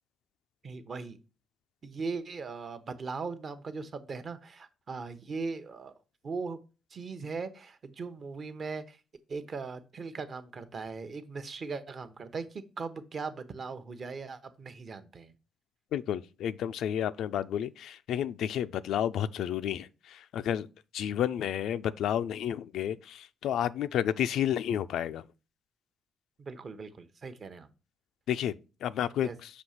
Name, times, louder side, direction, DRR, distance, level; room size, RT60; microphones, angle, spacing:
voice 1, 0.6-1.2 1.8-5.9 6.2-6.6 6.9-9.0 9.3-15.3 26.4-27.7 29.2-29.4, right 4 dB, 45° right, 0.7 m, -39 dB
voice 2, 15.9-20.7 20.9-25.2 28.3-29.3, left 10 dB, 80° left, 0.3 m, -31 dB
6.1 x 2.8 x 5.5 m
cardioid pair, 90°, 0 cm